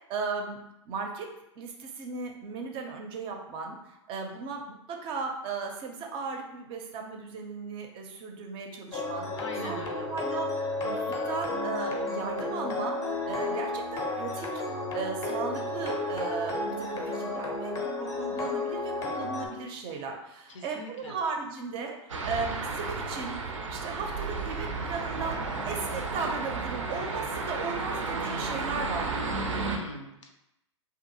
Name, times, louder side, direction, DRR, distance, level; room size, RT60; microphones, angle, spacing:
voice 1, 0.1-1.3 1.6-14.5 14.9-22.0 22.2-29.3, right 4 dB, 35° right, 3 dB, 0.5 m, -36 dB
sound 1, 8.9-19.5, left 2 dB, 20° left, 0.5 m, -32 dB
voice 2, 9.4-10.1 20.5-21.1 29.5-30.3, left 2 dB, 75° left, 3 dB, 0.6 m, -42 dB
sound 2, 22.1-29.8, right 3 dB, 90° right, 0.4 m, -33 dB
2.6 x 2.4 x 2.7 m, 0.85 s
hypercardioid pair, 105°, 16 cm